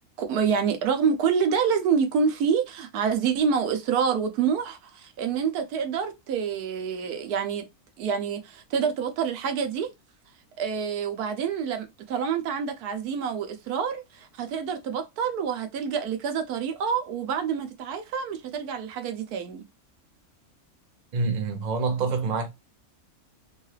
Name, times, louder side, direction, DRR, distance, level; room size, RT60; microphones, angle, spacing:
voice 1, 0.2-7.7 8.0-9.9 10.6-19.7, right 6 dB, 85° right, 1.2 m, -27 dB
voice 2, 21.1-22.5, right 4 dB, 45° right, 0.6 m, -26 dB
3.7 x 2.3 x 3.1 m
omnidirectional pair, 1.6 m